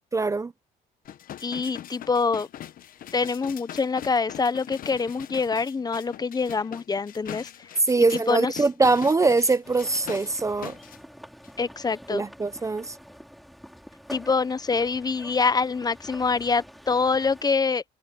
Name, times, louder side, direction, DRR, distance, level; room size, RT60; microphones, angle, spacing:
voice 1, 0.1-0.5 7.9-10.7 12.1-13.0, right 3 dB, 20° right, 0.6 m, -23 dB
sound 1, 1.0-11.0 11.4-11.5, left 11 dB, 55° left, 1.1 m, -42 dB
voice 2, 1.4-2.5 3.1-7.7 8.1-8.6 11.6-12.2 14.1-17.8, left 4 dB, 25° left, 0.8 m, -25 dB
sound 2, 9.6-17.4, equal, ahead, 5.4 m, -46 dB
cardioid pair, 110°, 17 cm